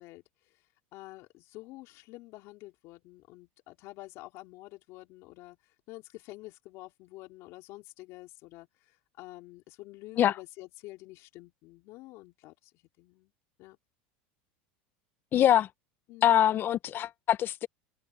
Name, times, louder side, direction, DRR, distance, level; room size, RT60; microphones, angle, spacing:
voice 1, 0.0-12.7 13.0-13.3 13.6-13.8 16.1-16.4, left 19 dB, 55° left, 3.2 m, -48 dB
voice 2, 15.3-15.7 16.2-17.7, left 11 dB, 40° left, 0.8 m, -24 dB
supercardioid pair, 115°, 6 cm